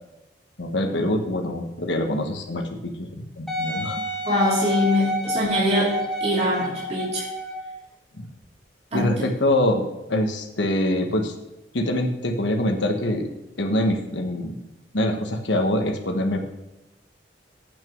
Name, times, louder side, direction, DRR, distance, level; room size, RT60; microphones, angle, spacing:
voice 1, 0.6-4.0 8.2-8.3 8.9-11.3 11.7-13.3 13.6-14.6 14.9-16.4, left 1 dB, 90° left, 3 dB, 1.3 m, -24 dB
Wind instrument woodwind instrument, 3.5-7.8 8.4-8.5, equal, 5° left, 1.6 m, -29 dB
voice 2, 4.2-5.9 6.2-7.3 8.9-9.1, left 1 dB, 35° right, -6 dB, 2.8 m, -23 dB
8.6 x 6.2 x 7.4 m, 0.95 s
head